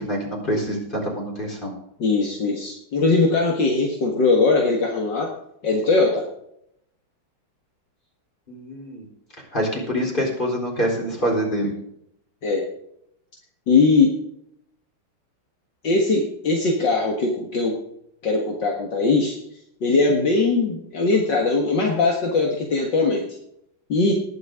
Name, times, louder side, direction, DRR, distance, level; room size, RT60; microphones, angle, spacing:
voice 1, 0.0-1.7 8.5-9.0 9.5-11.7, equal, 25° left, -1 dB, 4.2 m, -25 dB
voice 2, 2.0-5.3 5.6-6.3 12.4-12.6 13.7-14.1 15.8-17.8 18.2-19.4 19.8-23.3 23.9-24.1, left 3 dB, 65° left, 0 dB, 2.4 m, -20 dB
20.0 x 8.4 x 3.7 m, 0.75 s
omnidirectional pair, 2.2 m